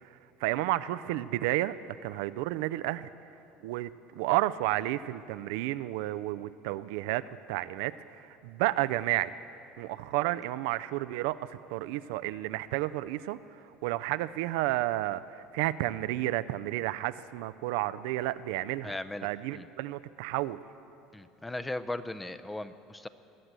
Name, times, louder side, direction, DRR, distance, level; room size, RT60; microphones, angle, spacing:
voice 1, 0.4-1.8 2.0-3.1 3.6-7.2 7.5-9.3 9.8-13.4 13.8-18.9 19.2-20.6, right 16 dB, 80° right, 14 dB, 0.4 m, -31 dB
voice 2, 18.8-19.3 19.5-19.7 21.1-23.1, left 2 dB, 10° left, 12 dB, 0.6 m, -37 dB
21.5 x 7.6 x 8.1 m, 2.9 s
supercardioid pair, 120°, 0 cm